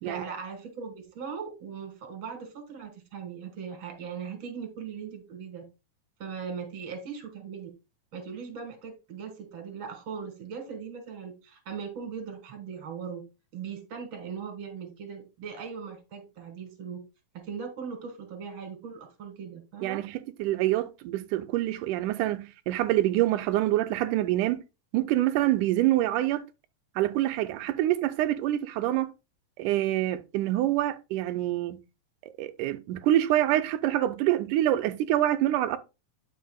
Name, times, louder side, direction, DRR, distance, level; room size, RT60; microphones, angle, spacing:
voice 1, 0.0-5.6 6.2-7.7 8.1-13.2 13.5-17.0 17.4-20.0, right 6 dB, 45° right, 2.2 m, -39 dB
voice 2, 19.8-24.6 24.9-26.5 27.0-29.1 29.6-31.8 32.4-35.8, right 14 dB, 85° right, 2.1 m, -26 dB
9.2 x 5.8 x 2.3 m
omnidirectional pair, 3.6 m